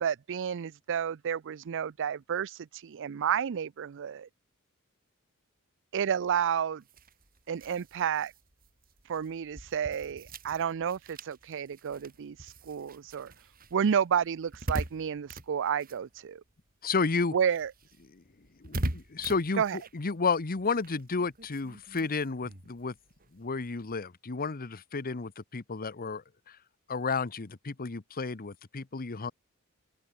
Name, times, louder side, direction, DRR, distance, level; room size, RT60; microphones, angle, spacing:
voice 1, 0.0-4.3 5.9-6.8 7.5-8.3 9.1-13.3 13.7-16.4 17.3-17.7 19.6-19.8, right 8 dB, 60° right, 0.4 m, -31 dB
sound 1, 6.8-16.7 17.0-23.9, right 1 dB, 40° right, 5.6 m, -42 dB
voice 2, 16.8-17.3 18.1-18.2 18.6-22.9 23.3-26.6 26.9-29.3, left 4 dB, 40° left, 0.9 m, -32 dB
open air
head